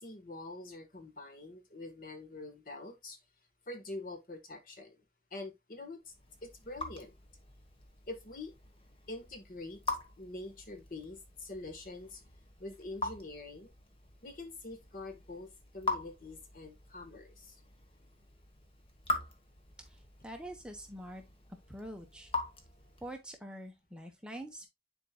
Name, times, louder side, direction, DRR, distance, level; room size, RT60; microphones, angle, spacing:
voice 1, 0.0-3.2 3.7-5.0 5.3-6.1 6.4-7.1 8.1-8.5 9.1-9.8 10.2-12.2 12.6-13.7 14.2-17.5, left 2 dB, 50° left, 1.3 m, -45 dB
Raindrop / Drip, 6.1-23.2, left 2 dB, 30° left, 1.2 m, -43 dB
voice 2, 19.9-21.2 21.7-22.3 23.0-24.7, right 1 dB, 5° right, 0.9 m, -45 dB
9.9 x 4.5 x 2.2 m
head